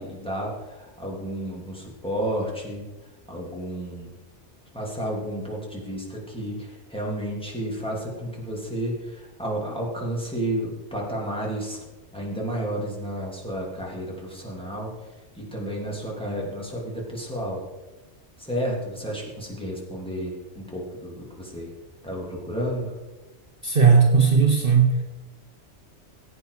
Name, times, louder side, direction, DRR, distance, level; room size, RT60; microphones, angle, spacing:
voice 1, 0.0-2.8 3.3-4.2 4.7-11.8 12.1-14.9 15.3-17.6 18.4-21.7 22.0-22.9, right 1 dB, 5° left, -3 dB, 3.1 m, -31 dB
voice 2, 23.6-25.0, right 5 dB, 50° right, 3 dB, 1.1 m, -17 dB
16.5 x 8.5 x 4.9 m, 1.1 s
omnidirectional pair, 1.2 m